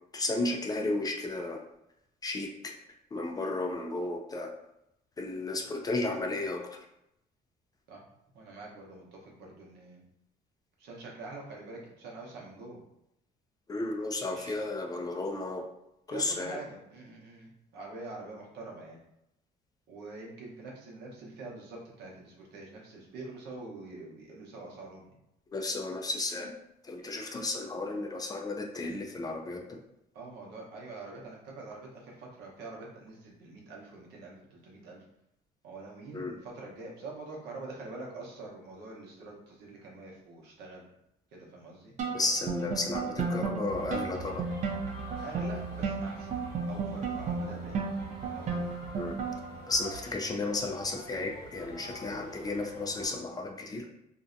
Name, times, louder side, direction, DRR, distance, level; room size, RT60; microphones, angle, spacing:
voice 1, 0.1-1.6 2.2-2.7 3.1-4.5 5.2-6.9 13.7-15.6 16.1-16.6 25.5-26.6 26.8-29.8 36.1-36.3 42.1-44.5 48.9-49.2 49.7-53.9, left 2 dB, 20° left, 2 dB, 0.3 m, -33 dB
voice 2, 8.3-10.0 10.8-12.8 14.3-14.5 16.1-19.0 19.9-25.2 30.1-35.0 35.6-40.9 41.3-41.9 45.2-46.4 46.7-47.8 48.2-48.6, right 3 dB, 80° right, -2 dB, 0.8 m, -45 dB
sound 1, 42.0-49.6, right 5 dB, 45° right, 0.4 m, -34 dB
sound 2, 43.6-53.1, equal, 65° left, 1.0 m, -45 dB
2.6 x 2.1 x 2.5 m, 0.83 s
cardioid pair, 110°, 17 cm